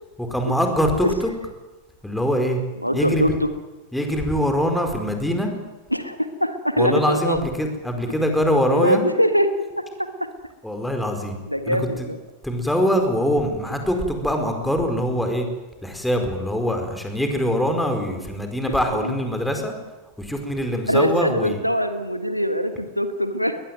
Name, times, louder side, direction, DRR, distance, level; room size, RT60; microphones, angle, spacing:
voice 1, 0.2-1.3 2.0-2.6 2.9-3.4 3.9-5.5 6.8-9.0 10.6-11.4 11.7-12.1 12.4-15.5 15.8-19.7 20.2-21.6, equal, 5° left, 5 dB, 4.7 m, -23 dB
voice 2, 2.8-3.5 5.9-7.4 8.7-9.5 9.8-10.1 11.5-12.2 18.9-19.2 20.9-23.6, equal, 90° left, 10 dB, 1.6 m, -23 dB
21.5 x 20.5 x 9.4 m, 1.1 s
figure-of-eight pair, 90°, 0 cm